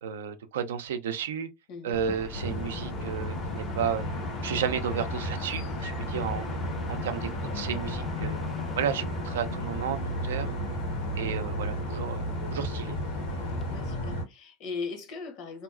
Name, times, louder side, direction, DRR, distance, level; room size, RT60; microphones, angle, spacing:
voice 1, 0.0-1.5 1.8-4.1 4.4-6.5 6.9-8.5 8.7-10.0 10.2-10.5 11.1-13.0, right 8 dB, 80° right, 0.4 m, -32 dB
voice 2, 1.7-2.0 13.7-15.6, left 4 dB, 60° left, 0.9 m, -38 dB
sound 1, 1.9-13.9, left 3 dB, 20° left, 0.4 m, -42 dB
sound 2, 2.3-14.2, equal, 85° left, 1.3 m, -33 dB
2.7 x 2.3 x 2.4 m
hypercardioid pair, 95°, 0 cm